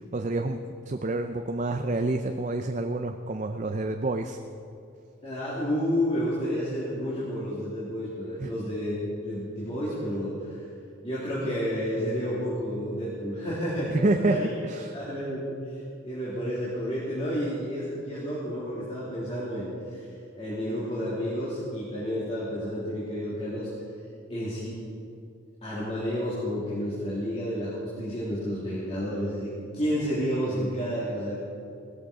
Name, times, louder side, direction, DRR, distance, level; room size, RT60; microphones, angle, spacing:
voice 1, 0.1-0.6 0.9-4.4 8.4-8.5 13.9-14.4 14.6-14.9, right 2 dB, 35° right, 6 dB, 0.5 m, -28 dB
voice 2, 5.2-10.6 11.0-14.5 14.9-23.7 24.3-24.8 25.6-31.3, equal, 30° left, -10 dB, 3.2 m, -31 dB
17.5 x 13.5 x 5.0 m, 2.6 s
head